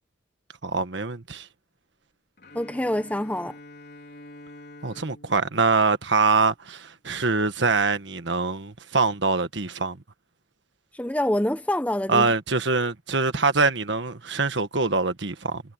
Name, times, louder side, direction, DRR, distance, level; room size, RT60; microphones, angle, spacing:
voice 1, 0.6-1.5 4.8-10.0 12.1-15.6, right 4 dB, 65° right, 1.5 m, -24 dB
Bowed string instrument, 2.4-6.5, left 1 dB, 55° left, 4.8 m, -47 dB
voice 2, 2.5-3.6 10.9-12.3, left 1 dB, 5° left, 0.8 m, -26 dB
head